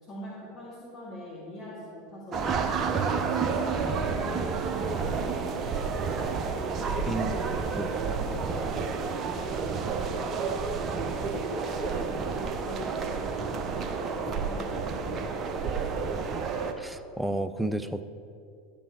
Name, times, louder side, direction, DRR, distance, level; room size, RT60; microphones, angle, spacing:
voice 1, 0.0-2.4 2.8-7.1 7.7-10.4 10.9-16.1, left 1 dB, 35° left, -7 dB, 2.4 m, -43 dB
sound 1, 2.3-16.7, right 5 dB, 35° right, 0.9 m, -30 dB
voice 2, 7.1-7.9 16.8-18.0, right 1 dB, 5° right, 11 dB, 0.5 m, -32 dB
13.0 x 7.2 x 4.6 m, 2.5 s
hypercardioid pair, 85°, 0 cm